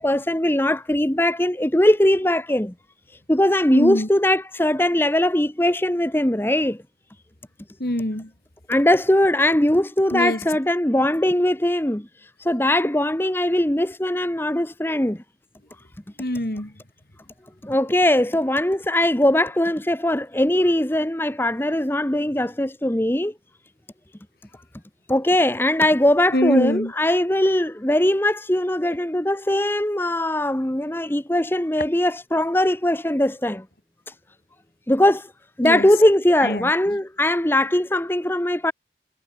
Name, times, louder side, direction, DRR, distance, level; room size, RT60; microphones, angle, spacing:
voice 1, 0.0-2.7 3.3-6.8 8.7-12.1 12.4-15.2 17.6-23.3 25.1-33.6 34.9-35.3 35.6-38.7, left 1 dB, 10° left, 1.0 m, -20 dB
voice 2, 3.7-4.1 7.8-8.3 10.1-10.4 16.2-16.7 26.3-26.9 35.6-35.9 36.4-36.7, left 1 dB, 55° left, 2.5 m, -24 dB
head